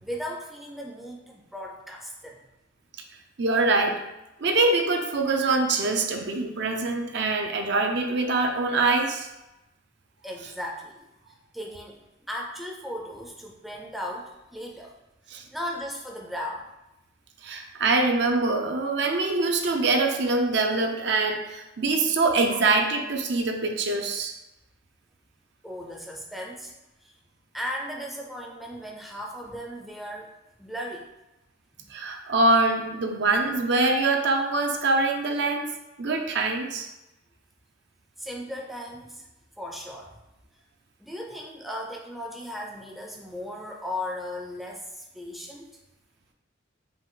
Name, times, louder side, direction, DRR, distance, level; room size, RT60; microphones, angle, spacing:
voice 1, 0.0-2.4 6.1-6.2 10.2-12.0 12.3-15.0 15.3-16.7 22.5-22.6 25.6-26.7 27.0-27.1 27.5-30.3 30.6-31.1 31.8-31.9 38.2-39.3 39.6-40.2 41.0-45.8, left 1 dB, ahead, -1 dB, 0.5 m, -37 dB
voice 2, 3.4-4.0 4.4-9.3 15.3-15.4 17.4-24.3 31.9-35.7 36.0-36.9, right 3 dB, 65° right, 3 dB, 0.6 m, -24 dB
5.6 x 2.5 x 3.7 m, 0.94 s
head